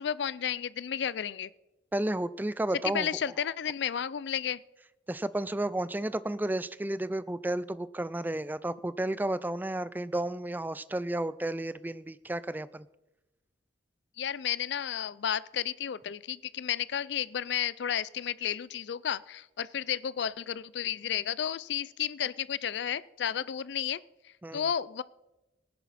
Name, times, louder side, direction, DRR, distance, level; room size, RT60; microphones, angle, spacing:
voice 1, 0.0-1.5 2.9-4.6 14.2-24.0 24.2-25.0, left 9 dB, 65° left, 19 dB, 0.4 m, -32 dB
voice 2, 1.9-3.1 5.1-12.9 24.4-24.7, right 1 dB, 10° right, 17 dB, 0.3 m, -32 dB
19.0 x 10.5 x 4.2 m, 1.0 s
head